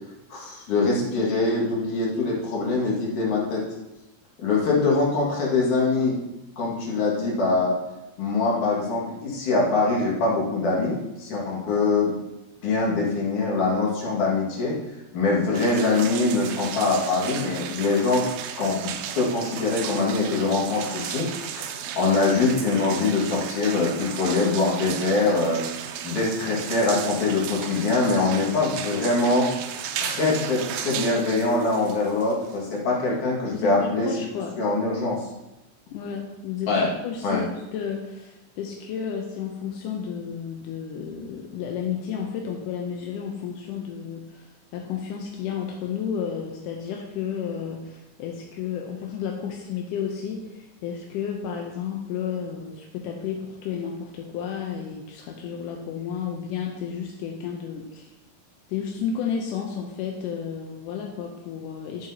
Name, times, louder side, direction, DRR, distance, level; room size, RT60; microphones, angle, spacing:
voice 1, 0.3-3.6 4.4-6.2 6.6-7.8 8.2-12.1 12.6-14.8 15.1-18.3 18.6-21.3 21.6-25.6 26.0-29.5 30.0-34.1 34.6-35.3 36.7-36.9 37.2-37.4, left 3 dB, 70° left, -4 dB, 3.5 m, -23 dB
sound 1, 15.5-32.8, right 8 dB, 75° right, 1.9 m, -35 dB
voice 2, 33.5-34.6 35.9-37.4 37.7-44.5 44.7-58.1 58.7-62.1, left 7 dB, 90° left, 1 dB, 2.4 m, -32 dB
12.0 x 7.9 x 2.9 m, 0.99 s
omnidirectional pair, 3.6 m